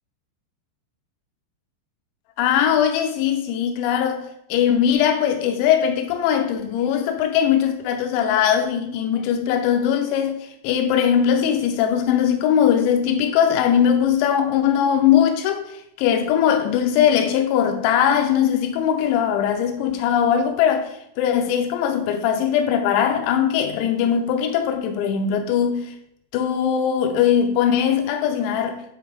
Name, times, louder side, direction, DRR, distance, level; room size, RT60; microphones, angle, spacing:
voice 1, 2.4-15.7 16.0-25.9 26.3-28.9, left 9 dB, 85° left, 2.5 m, -20 dB
7.8 x 4.6 x 3.4 m
omnidirectional pair, 5.7 m